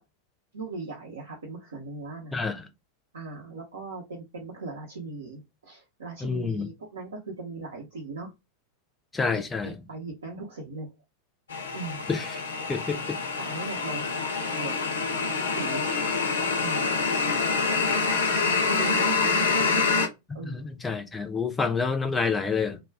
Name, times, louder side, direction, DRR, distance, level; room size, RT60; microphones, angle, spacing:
voice 1, 0.5-2.3 3.1-8.3 9.3-9.4 9.9-10.9 11.7-12.0 13.4-14.9 15.2-15.9 16.6-16.9 18.5-19.9 20.3-20.7, right 3 dB, 70° right, 0.7 m, -38 dB
voice 2, 2.3-2.7 6.2-6.7 9.1-9.7 12.1-12.4 12.7-13.2 20.4-22.8, left 5 dB, 15° left, 0.5 m, -28 dB
sound 1, 11.5-20.1, left 4 dB, 65° left, 0.5 m, -26 dB
2.3 x 2.2 x 3.3 m
figure-of-eight pair, 90°, 0 cm